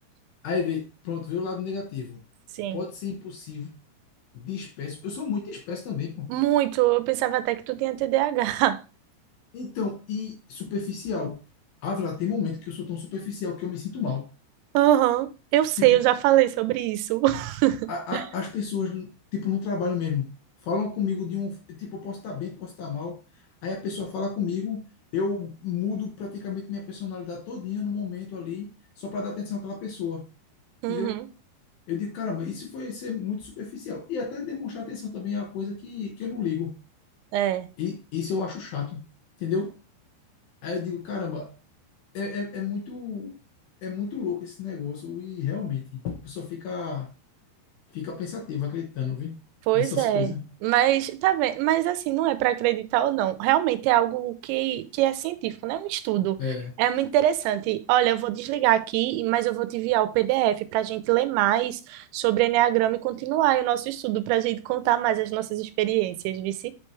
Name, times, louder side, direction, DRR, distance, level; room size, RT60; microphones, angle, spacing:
voice 1, 0.4-2.2 2.7-3.8 4.3-6.3 9.5-11.4 11.8-14.3 15.8-16.0 17.9-20.3 20.6-23.2 23.6-24.8 25.1-28.7 29.0-30.3 30.9-31.2 31.9-36.8 37.8-39.0 39.4-39.7 40.6-41.5 42.1-43.3 43.8-47.1 47.9-49.4 49.7-50.4 56.4-56.7, left 6 dB, 70° left, 2.4 m, -31 dB
voice 2, 6.3-8.8 14.7-18.2 30.8-31.3 37.3-37.7 49.7-50.3 50.6-56.4 56.8-66.7, right 14 dB, 85° right, 2.9 m, -23 dB
8.3 x 4.5 x 3.1 m
omnidirectional pair, 5.2 m